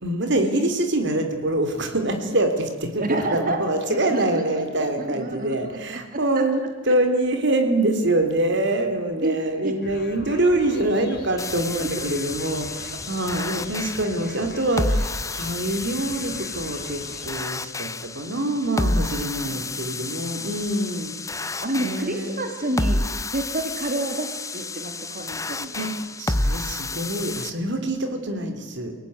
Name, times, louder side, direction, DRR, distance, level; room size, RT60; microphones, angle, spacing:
voice 1, 0.0-17.9 18.1-21.1 21.8-22.4 25.7-25.9 26.2-28.9, right 1 dB, 65° right, 6 dB, 3.4 m, -25 dB
voice 2, 3.0-3.6 3.9-6.5 9.2-9.4 9.6-9.7 11.8-12.1 19.5-20.7 21.6-23.0 23.3-25.7, right 1 dB, 45° right, 4 dB, 3.3 m, -30 dB
sound 1, 9.8-17.4, left 2 dB, 50° left, 4.7 m, -41 dB
sound 2, 11.4-27.5, left 2 dB, 15° left, 0.9 m, -30 dB
29.5 x 18.5 x 9.7 m, 1.3 s
head